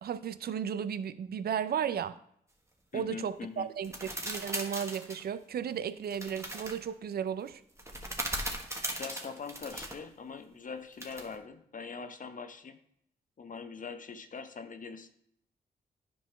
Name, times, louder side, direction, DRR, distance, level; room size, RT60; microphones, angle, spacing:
voice 1, 0.0-2.2 2.9-7.6, right 8 dB, 65° right, 15 dB, 0.5 m, -34 dB
voice 2, 2.9-3.7 9.0-12.8 13.4-15.1, left 5 dB, 50° left, 9 dB, 0.8 m, -42 dB
sound 1, 3.8-5.2 6.1-6.8 7.8-10.0 11.0-11.3, right 1 dB, 15° right, 1.4 m, -38 dB
9.5 x 5.4 x 3.3 m, 0.71 s
supercardioid pair, 50°, 18 cm